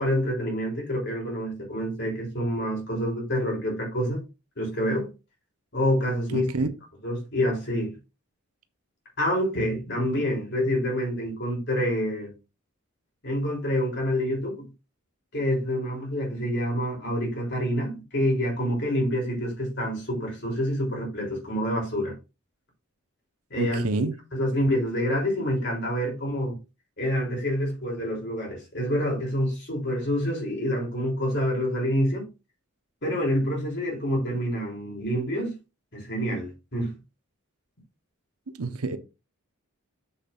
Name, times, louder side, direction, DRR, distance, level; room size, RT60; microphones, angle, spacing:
voice 1, 0.0-4.2 4.6-5.1 5.7-6.5 7.0-7.9 9.2-12.3 13.2-14.7 15.3-22.1 23.5-26.6 27.0-32.3 33.0-35.6 35.9-36.9, equal, 50° left, 3.6 m, -27 dB
voice 2, 6.3-6.7 23.6-24.1 38.6-39.0, right 3 dB, 90° right, 1.0 m, -27 dB
7.1 x 6.9 x 2.6 m
head